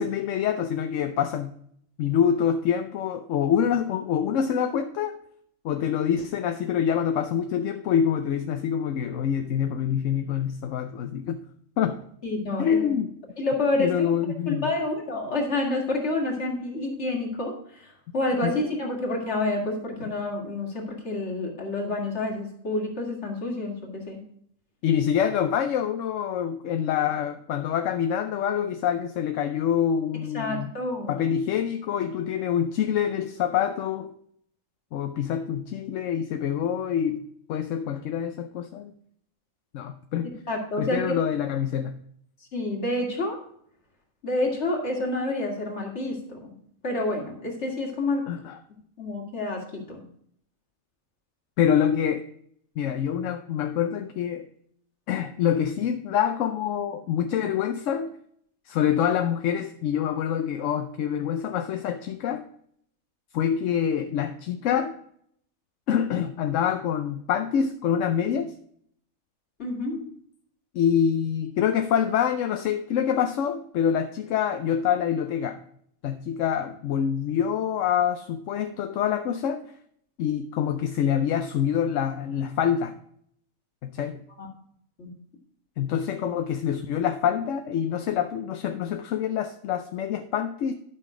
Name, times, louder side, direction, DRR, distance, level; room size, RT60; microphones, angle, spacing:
voice 1, 0.0-1.5 2.0-5.2 5.6-11.4 11.8-12.0 12.6-13.1 13.8-14.7 18.4-18.6 24.8-30.7 31.1-34.1 34.9-38.9 39.7-40.3 40.8-41.9 48.3-48.6 51.6-52.2 52.8-54.5 55.1-58.1 58.7-62.4 63.3-65.0 65.9-68.5 70.7-75.6 76.0-79.7 80.2-82.9 83.8-84.2 85.8-90.7, left 8 dB, 70° left, 8 dB, 0.9 m, -26 dB
voice 2, 12.2-12.9 13.4-14.0 14.5-24.2 30.1-31.3 40.2-41.0 42.5-43.4 44.2-46.5 46.8-48.2 49.0-50.0 69.6-70.0 84.4-84.5 85.0-85.1, left 2 dB, 55° left, 1 dB, 2.3 m, -28 dB
11.5 x 5.8 x 4.9 m, 0.66 s
omnidirectional pair, 1.4 m